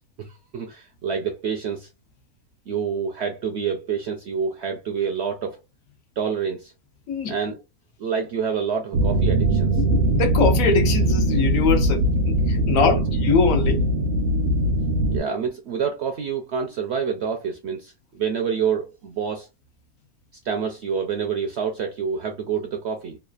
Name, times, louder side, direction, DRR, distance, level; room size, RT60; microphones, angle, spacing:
voice 1, 0.2-1.9 2.7-5.6 6.2-6.7 7.3-7.6 8.0-9.8 12.7-13.0 15.1-19.5 20.4-23.2, right 6 dB, 70° right, 0.6 m, -27 dB
sound 1, 8.9-15.2, right 1 dB, 85° right, 1.2 m, -21 dB
voice 2, 9.8-13.8, left 5 dB, 70° left, 1.0 m, -23 dB
3.1 x 2.3 x 2.3 m
omnidirectional pair, 1.6 m